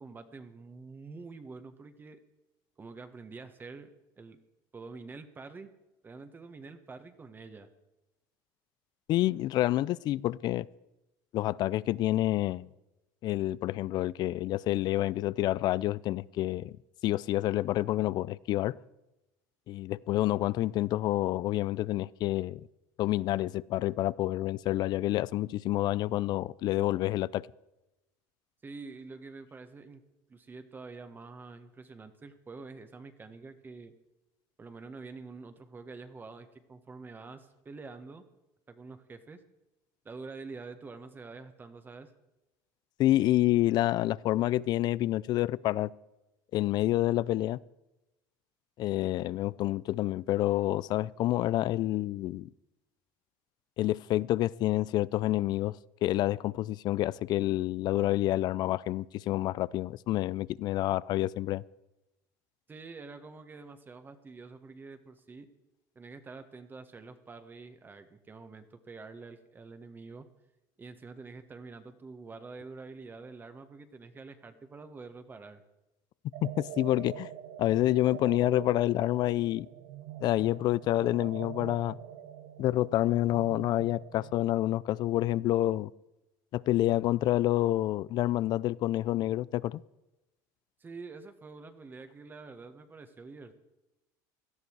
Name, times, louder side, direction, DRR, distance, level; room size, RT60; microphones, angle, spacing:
voice 1, 0.0-2.2 2.8-3.9 4.2-4.4 4.7-5.7 6.0-7.7 28.6-30.0 30.3-33.9 34.6-38.2 38.7-39.4 40.0-42.1 62.7-65.5 65.9-70.3 70.8-75.6 90.8-93.6, right 4 dB, 20° right, 1.5 m, -47 dB
voice 2, 9.1-10.7 11.3-12.7 13.2-16.8 17.0-18.8 19.7-22.7 23.0-27.5 43.0-45.9 46.5-47.6 48.8-52.5 53.8-61.6 76.4-77.3 77.6-79.7 80.2-82.0 82.6-85.9 86.5-89.8, left 15 dB, 50° left, 0.5 m, -28 dB
sound 1, 76.3-84.6, right 11 dB, 80° right, 1.1 m, -45 dB
17.5 x 13.0 x 4.7 m
supercardioid pair, 110°, 9 cm